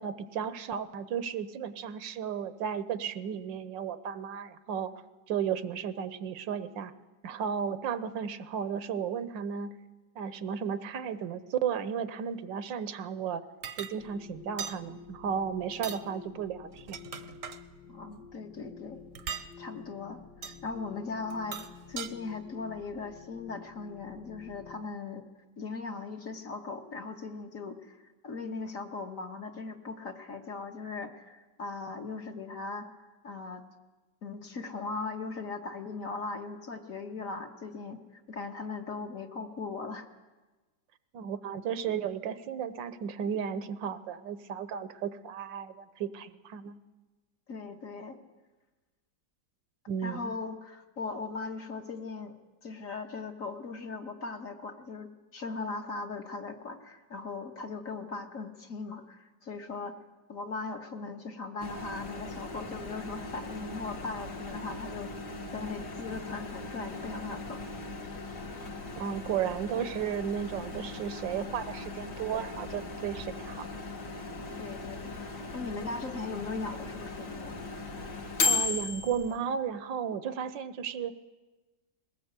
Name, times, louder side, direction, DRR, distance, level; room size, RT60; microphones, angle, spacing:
voice 1, 0.0-4.9 5.3-6.9 7.2-9.7 10.2-13.4 13.8-17.0 41.1-46.8 49.9-50.3 69.0-73.7 78.4-81.1, right 8 dB, 80° right, 13 dB, 1.5 m, -34 dB
sound 1, 13.6-13.9 14.6-14.8 15.7-16.0 16.7-17.6 19.2-19.5 20.4-20.6 21.3-22.1, right 7 dB, 55° right, 1.1 m, -39 dB
sound 2, 14.0-24.9, left 7 dB, 80° left, 2.3 m, -50 dB
voice 2, 17.9-19.0 19.6-21.6 21.9-25.3 25.6-32.9 33.2-33.6 34.2-40.1 47.5-48.2 50.0-52.3 52.6-60.0 60.3-67.6 74.6-75.1 75.5-77.5, left 4 dB, 50° left, 4 dB, 1.7 m, -39 dB
Microwave oven, 61.6-79.4, left 4 dB, 65° left, 2.5 m, -37 dB
21.0 x 18.0 x 8.1 m, 1.2 s
omnidirectional pair, 2.0 m